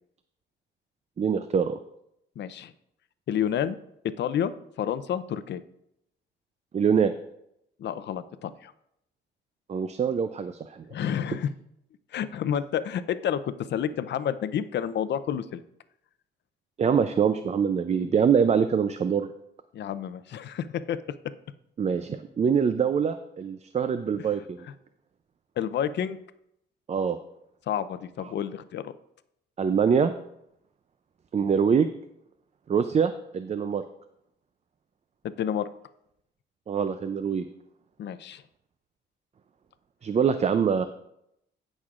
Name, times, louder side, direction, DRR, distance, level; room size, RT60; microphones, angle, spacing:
voice 1, 1.2-1.8 6.7-7.1 9.7-10.8 16.8-19.3 21.8-24.6 26.9-27.2 29.6-30.1 31.3-31.9 32.7-33.8 36.7-37.4 40.0-40.9, right 6 dB, 35° right, 10 dB, 0.5 m, -24 dB
voice 2, 2.4-2.7 3.3-3.8 4.2-5.6 7.8-8.7 10.9-11.5 12.1-15.6 19.7-21.0 25.6-26.2 27.7-28.9 35.4-35.7 38.0-38.4, left 9 dB, 65° left, 13 dB, 0.6 m, -29 dB
17.0 x 6.3 x 2.5 m, 0.78 s
cardioid pair, 90°, 20 cm